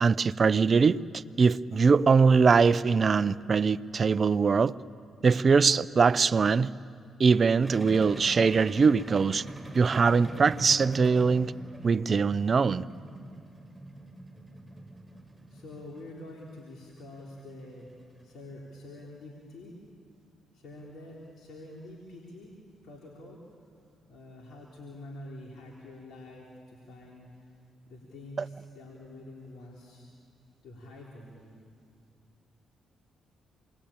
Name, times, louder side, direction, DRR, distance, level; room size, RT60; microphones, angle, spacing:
voice 1, 0.0-4.7 5.2-6.7 7.2-9.4 9.7-11.5 11.8-12.8, right 5 dB, 45° right, 16 dB, 0.6 m, -22 dB
sound 1, 7.6-18.4, right 1 dB, 10° right, 5.7 m, -44 dB
voice 2, 15.5-19.8 20.5-22.5 22.8-23.4 24.1-27.5 27.9-30.1 30.6-31.6, left 1 dB, 70° left, -3 dB, 3.7 m, -46 dB
27.5 x 21.0 x 8.8 m, 2.2 s
supercardioid pair, 60°, 0 cm